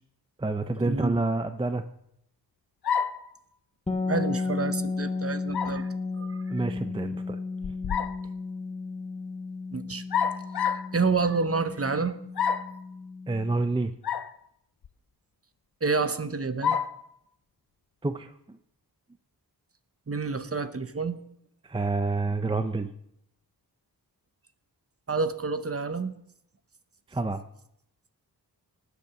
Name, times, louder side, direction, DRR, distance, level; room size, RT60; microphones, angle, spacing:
voice 1, 0.4-1.8 6.5-7.4 13.3-13.9 18.0-18.6 21.6-22.9 27.1-27.4, right 3 dB, 15° right, 9 dB, 0.5 m, -28 dB
sound 1, 2.8-3.3 5.5-5.8 7.6-8.2 10.1-10.9 12.4-12.8 14.0-14.3 14.8-14.9 16.6-17.0, left 7 dB, 70° left, 0.8 m, -28 dB
sound 2, 3.9-13.6, left 3 dB, 15° left, 1.1 m, -34 dB
voice 2, 4.1-5.9 6.2-6.6 9.7-10.0 10.9-12.2 15.8-16.8 20.1-21.2 25.1-26.1, right 4 dB, 35° right, 11 dB, 0.9 m, -28 dB
19.5 x 8.3 x 5.9 m, 0.76 s
wide cardioid pair, 115°, 40 cm